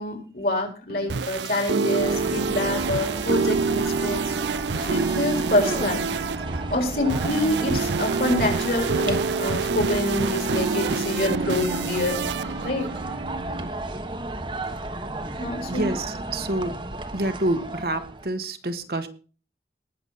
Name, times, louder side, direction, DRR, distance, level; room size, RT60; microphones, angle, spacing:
voice 1, 0.0-4.3 4.8-6.0 6.7-12.2 12.6-12.9 15.4-15.9, left 1 dB, 55° left, 3 dB, 4.0 m, -26 dB
sound 1, 0.9-13.7, right 5 dB, 80° right, 0.5 m, -27 dB
sound 2, 2.0-18.3, right 2 dB, 25° right, 1.2 m, -34 dB
voice 2, 15.7-16.8 17.1-19.1, right 1 dB, 55° right, 8 dB, 1.3 m, -27 dB
19.0 x 7.1 x 4.1 m, 0.37 s
head